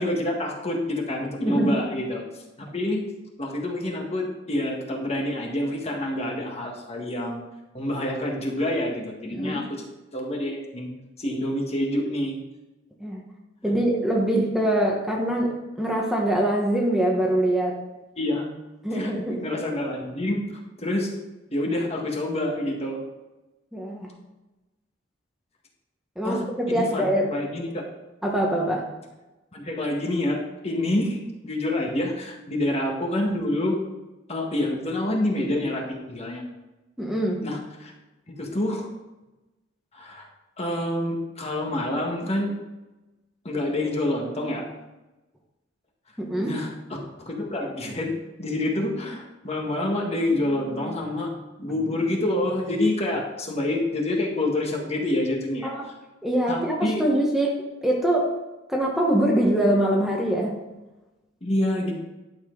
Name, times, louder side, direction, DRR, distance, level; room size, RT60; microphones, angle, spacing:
voice 1, 0.0-3.0 3.4-7.4 7.7-9.8 10.1-10.9 11.2-12.3 13.7-13.8 18.2-18.5 18.9-20.4 20.8-21.1 21.5-23.0 26.2-27.9 29.5-31.2 31.4-33.8 34.3-36.4 37.4-37.9 38.3-38.9 39.9-40.2 40.6-42.5 43.4-44.6 46.4-46.7 47.2-48.1 48.4-51.3 51.6-55.7 56.5-57.0 61.4-61.9, left 1 dB, 35° left, 0 dB, 1.7 m, -27 dB
voice 2, 1.4-1.8 9.3-9.6 13.0-13.2 13.6-17.7 18.8-19.5 23.7-24.1 26.2-27.3 28.2-28.9 37.0-37.4 46.2-46.5 55.6-55.8 56.2-58.3 58.7-60.6, right 1 dB, ahead, -2 dB, 1.3 m, -23 dB
11.5 x 7.3 x 3.9 m, 1.1 s
head